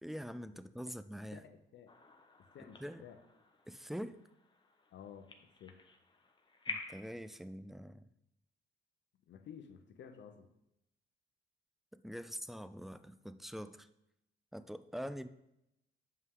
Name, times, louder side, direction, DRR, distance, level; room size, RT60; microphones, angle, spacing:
voice 1, 0.0-1.4 2.8-3.0 3.7-4.2 6.7-8.0 11.9-13.9 14.5-15.3, equal, ahead, 13 dB, 0.3 m, -44 dB
voice 2, 1.3-2.0 2.4-3.2 4.9-5.8 9.3-10.5 15.0-15.1, left 8 dB, 65° left, 8 dB, 0.8 m, -53 dB
sound 1, 1.9-7.2, left 3 dB, 25° left, 0.9 m, -49 dB
7.8 x 5.5 x 3.7 m, 0.84 s
cardioid pair, 90°, 20 cm